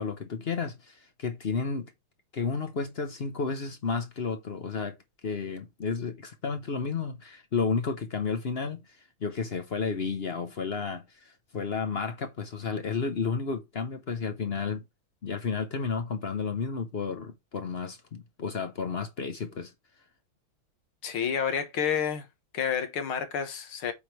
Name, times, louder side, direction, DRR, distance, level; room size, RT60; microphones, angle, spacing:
voice 1, 0.0-1.9 2.3-5.0 5.2-14.8 15.2-19.7, left 5 dB, 55° left, 0.6 m, -32 dB
voice 2, 21.0-22.3 22.5-23.9, left 7 dB, 85° left, 2.2 m, -29 dB
8.6 x 3.3 x 5.8 m
omnidirectional pair, 2.3 m